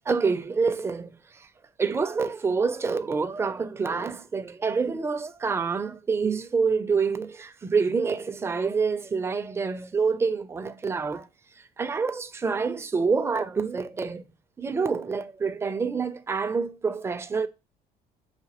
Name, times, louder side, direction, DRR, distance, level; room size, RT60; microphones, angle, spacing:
voice 1, 0.1-1.5 1.8-11.3 11.8-14.2 14.6-17.5, right 5 dB, 15° right, 0.4 m, -27 dB
4.9 x 2.6 x 2.9 m
cardioid pair, 110°, 17 cm